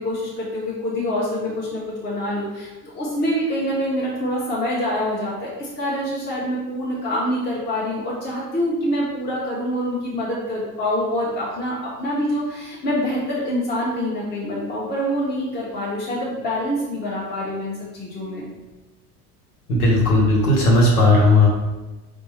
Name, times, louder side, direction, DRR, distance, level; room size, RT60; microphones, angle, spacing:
voice 1, 0.0-18.4, equal, 20° left, -7 dB, 0.9 m, -25 dB
voice 2, 19.7-21.5, left 2 dB, 75° left, -3 dB, 1.2 m, -15 dB
4.3 x 2.0 x 3.2 m, 1.1 s
hypercardioid pair, 75°, 45 cm